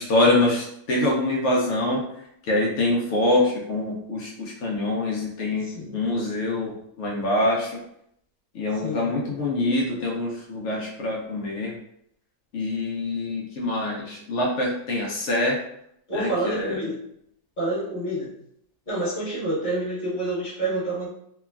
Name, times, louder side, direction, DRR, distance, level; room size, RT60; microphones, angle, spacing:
voice 1, 0.0-7.8 8.5-11.8 12.5-15.6 16.1-16.8, left 2 dB, 85° left, -2 dB, 0.6 m, -25 dB
voice 2, 5.6-6.0 8.8-9.1 16.1-17.0 17.6-18.3 18.9-21.1, right 1 dB, 30° left, -9 dB, 1.3 m, -28 dB
3.1 x 2.2 x 2.3 m, 0.74 s
omnidirectional pair, 1.9 m